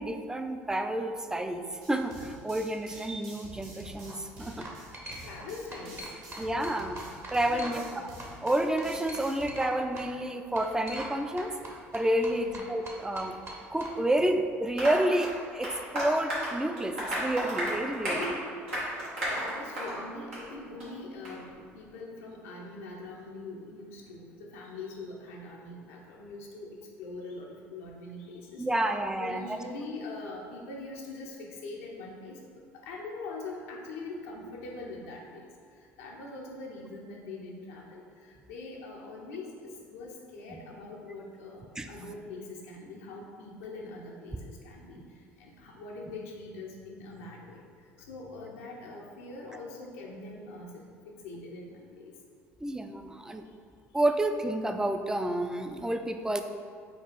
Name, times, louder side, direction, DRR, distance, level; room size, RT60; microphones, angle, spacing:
voice 1, 0.0-4.7 6.4-7.0 7.3-7.8 8.4-13.4 13.7-18.4 28.6-29.6 40.5-40.6 41.8-41.9 44.9-45.0 52.6-53.4 53.9-56.4, right 1 dB, 10° right, 7 dB, 0.3 m, -30 dB
sound 1, 1.8-9.5, right 1 dB, 70° right, 1.0 m, -48 dB
sound 2, 3.8-4.1 4.6-5.5 5.7-7.9 8.2-9.7 10.0-10.1 10.6-11.1 11.4-13.9, right 2 dB, 35° right, 0.8 m, -42 dB
voice 2, 5.2-6.0 7.5-8.0 12.3-12.6 18.0-18.3 18.7-26.7 27.0-28.7 29.2-32.4 32.7-35.5 35.8-45.0 45.4-47.6 48.0-50.7 51.1-52.1, left 2 dB, 85° left, -2 dB, 0.6 m, -43 dB
Applause, 14.8-20.0 20.3-20.5 20.8-20.9 21.2-21.3, equal, 90° right, 1.2 m, -33 dB
4.5 x 2.4 x 3.9 m, 2.2 s
hypercardioid pair, 65°, 7 cm